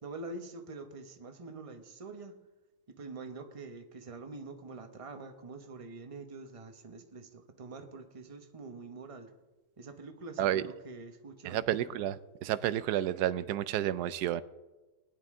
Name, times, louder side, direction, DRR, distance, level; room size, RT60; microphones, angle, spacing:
voice 1, 0.0-2.4 2.9-9.3 9.8-11.6, right 3 dB, 25° right, 6 dB, 0.9 m, -45 dB
voice 2, 11.4-14.4, right 12 dB, 90° right, 15 dB, 1.1 m, -31 dB
20.5 x 10.5 x 3.7 m, 1.1 s
omnidirectional pair, 1.7 m